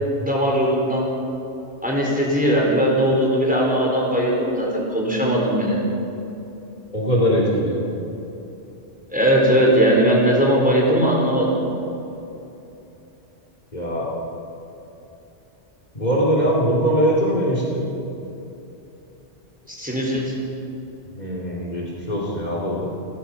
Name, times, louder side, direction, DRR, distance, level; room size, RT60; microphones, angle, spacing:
voice 1, 0.2-1.1 1.8-5.8 9.1-11.5 19.7-20.3, equal, 5° right, -3 dB, 4.6 m, -19 dB
voice 2, 6.9-7.8 13.7-14.0 15.9-17.8 21.1-22.9, equal, 40° left, -3 dB, 3.1 m, -21 dB
29.5 x 15.5 x 5.8 m, 2.9 s
omnidirectional pair, 1.2 m